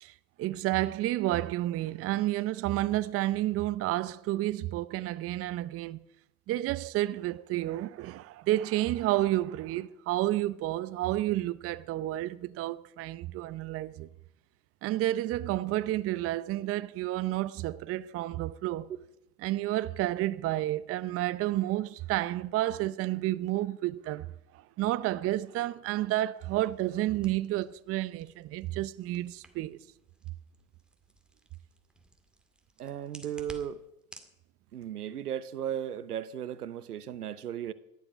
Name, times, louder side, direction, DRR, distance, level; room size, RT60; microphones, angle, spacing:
voice 1, 0.0-6.0 6.5-14.1 14.8-18.9 19.4-24.3 24.5-29.8, right 15 dB, 30° right, 0.6 m, -30 dB
sound 1, 26.3-34.3, right 1 dB, ahead, 2.2 m, -56 dB
voice 2, 32.8-33.8 34.7-37.7, right 10 dB, 90° right, 1.0 m, -36 dB
18.0 x 12.0 x 5.1 m
hypercardioid pair, 95°, 45 cm